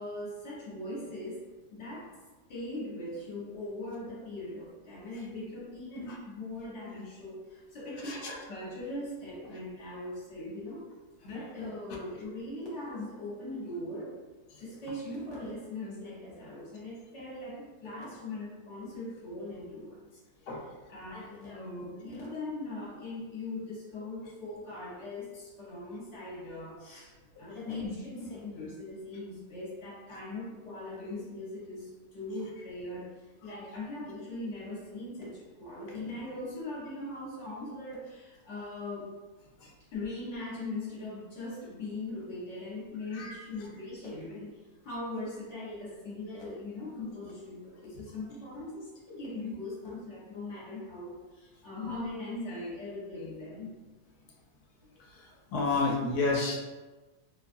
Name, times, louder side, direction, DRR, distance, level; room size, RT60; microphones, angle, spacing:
voice 1, 0.0-1.4 1.7-2.1 2.5-10.8 11.2-14.2 14.6-20.1 20.9-27.1 27.4-39.1 39.9-44.6 44.8-53.8, left 2 dB, 50° left, -5 dB, 1.1 m, -40 dB
voice 2, 8.0-8.4 20.5-20.6 33.5-33.6 39.6-39.7 43.1-43.4 55.1-56.6, left 3 dB, 80° left, -1 dB, 1.1 m, -31 dB
2.8 x 2.4 x 2.6 m, 1.2 s
omnidirectional pair, 1.7 m